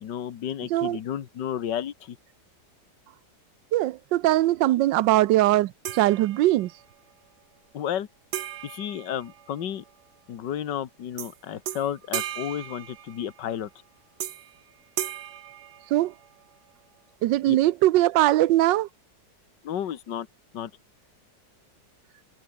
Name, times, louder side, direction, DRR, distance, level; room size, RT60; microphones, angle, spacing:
voice 1, 0.0-2.2 7.7-8.1 8.6-9.8 10.3-13.7 17.5-17.6 19.6-20.3 20.5-20.7, left 9 dB, 75° left, 1.9 m, -32 dB
voice 2, 3.7-6.7 15.9-16.1 17.2-18.9, right 15 dB, 85° right, 1.3 m, -21 dB
sound 1, 5.8-6.8 8.3-9.9 11.2-11.4 11.7-13.5 14.2-14.6 15.0-16.4, right 11 dB, 65° right, 1.4 m, -36 dB
omnidirectional pair, 1.9 m